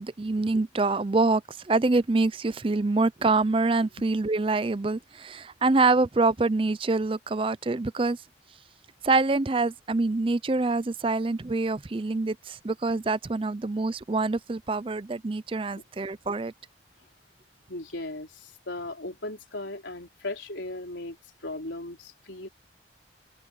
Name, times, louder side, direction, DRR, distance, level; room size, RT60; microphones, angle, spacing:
voice 1, 0.0-8.2 9.0-16.5, right 3 dB, 30° right, 0.5 m, -25 dB
voice 2, 17.7-21.2 21.4-22.5, left 2 dB, 85° left, 4.2 m, -37 dB
head